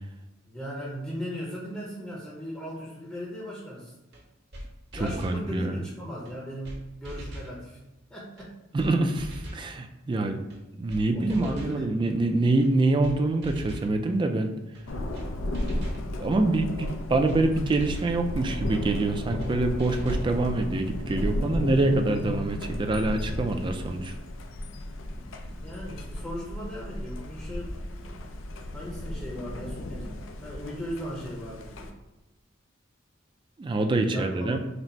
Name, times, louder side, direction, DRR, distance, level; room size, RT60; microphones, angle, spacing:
voice 1, 0.5-3.9 4.9-7.8 8.1-8.5 11.1-11.9 25.1-28.2 28.7-31.9 34.1-34.6, equal, 10° left, -5 dB, 0.6 m, -38 dB
sound 1, 4.1-4.2 4.5-4.7 4.9-5.4 6.3-6.4 6.6-6.8 7.0-7.5 8.4-8.5 8.8-8.9 9.2-9.7 10.5-10.6 10.9-11.0 11.3-11.8 12.6-12.7 13.0-13.2 13.4-13.9 14.7-14.8 15.1-15.3 15.5-16.0 16.9-17.0 17.3-17.4 17.7-18.2 19.0-19.1 19.4-19.5 19.8-20.3, equal, 55° right, 1.0 m, -39 dB
voice 2, 4.9-5.8 8.7-10.4 10.7-14.5 15.5-15.6 16.2-24.1 33.6-34.6, right 2 dB, 25° right, 5 dB, 0.3 m, -25 dB
Thunder, 14.9-31.9, left 1 dB, 80° left, 0.5 m, -34 dB
4.0 x 2.0 x 4.3 m, 1.0 s
head